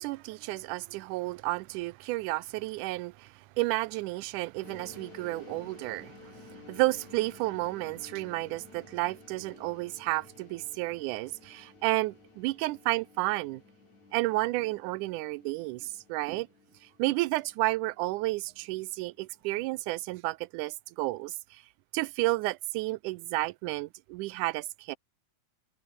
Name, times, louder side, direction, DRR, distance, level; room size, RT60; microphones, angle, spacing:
voice 1, 0.0-13.6 14.1-16.5 16.8-21.6 21.9-25.0, right 20 dB, 85° right, 2.1 m, -32 dB
sound 1, 4.6-19.6, left 3 dB, 70° left, 8.4 m, -54 dB
omnidirectional pair, 3.5 m